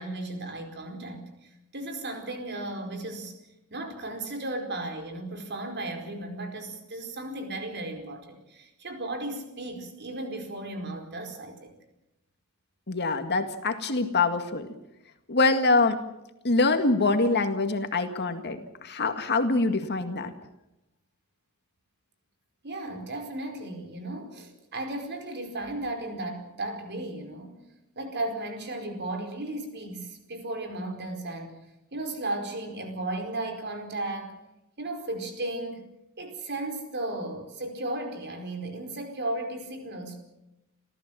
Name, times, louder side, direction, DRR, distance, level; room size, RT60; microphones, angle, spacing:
voice 1, 0.0-3.3 3.7-11.8 22.6-27.6 27.9-31.6 31.9-34.4 34.8-35.9 36.2-40.2, right 2 dB, 50° right, 4 dB, 4.8 m, -35 dB
voice 2, 12.9-14.7 15.3-16.0 16.4-20.3, left 3 dB, 50° left, 7 dB, 2.0 m, -24 dB
28.5 x 15.0 x 7.6 m, 0.90 s
head